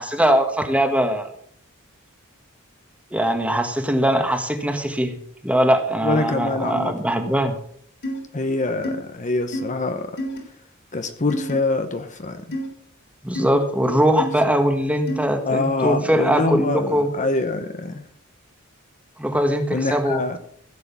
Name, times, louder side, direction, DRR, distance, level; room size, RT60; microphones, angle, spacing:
voice 1, 0.0-1.3 3.1-5.2 5.4-7.5 13.2-17.1 19.2-20.4, equal, 5° right, 6 dB, 1.5 m, -21 dB
voice 2, 6.0-6.9 8.3-10.1 10.9-12.6 15.4-18.0 19.7-20.4, left 2 dB, 35° left, 8 dB, 1.0 m, -25 dB
sound 1, 8.0-8.2 8.8-9.0 9.5-9.7 10.2-10.4 11.3-11.5 12.5-12.7 13.3-13.5 14.2-14.3 15.1-15.3, equal, 55° left, 3.6 m, -28 dB
15.5 x 7.8 x 6.0 m, 0.63 s
head